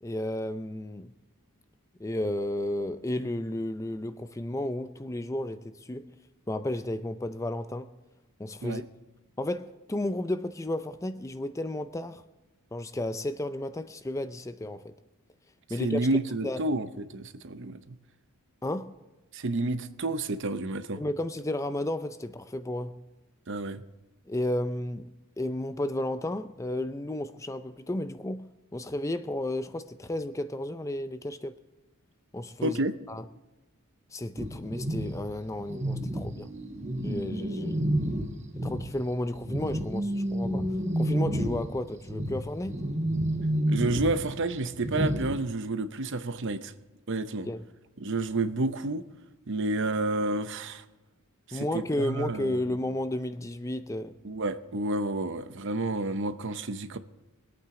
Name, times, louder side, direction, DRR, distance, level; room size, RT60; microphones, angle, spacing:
voice 1, 0.0-1.1 2.0-6.1 6.5-7.9 8.4-8.8 9.4-12.2 12.7-14.9 15.7-16.0 16.4-16.6 18.6-18.9 21.0-23.0 24.3-25.1 25.4-28.5 28.7-31.6 32.3-32.8 33.1-33.2 34.1-36.5 37.0-37.8 38.6-40.7 41.0-42.8 47.5-47.6 51.5-54.1, left 1 dB, 15° left, 0.4 m, -33 dB
voice 2, 15.8-18.0 19.3-21.0 23.5-23.8 32.6-32.9 43.7-46.7 47.1-47.5 48.0-49.0 49.5-50.8 51.5-52.6 54.2-57.0, right 2 dB, 55° right, 0.7 m, -30 dB
sound 1, 34.4-39.0 39.3-45.4, right 1 dB, 30° right, 1.1 m, -30 dB
22.5 x 8.8 x 3.8 m
head